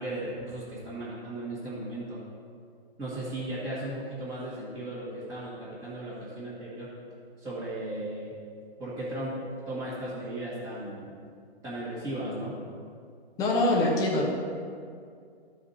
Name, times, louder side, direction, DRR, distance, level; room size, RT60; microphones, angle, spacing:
voice 1, 0.0-2.2 3.0-6.9 7.4-8.3 8.8-11.2 11.6-12.5, right 1 dB, 10° right, -12 dB, 1.9 m, -36 dB
voice 2, 13.4-14.3, left 2 dB, 10° left, -2 dB, 0.9 m, -24 dB
13.5 x 5.1 x 4.2 m, 2.3 s
hypercardioid pair, 155°, 31 cm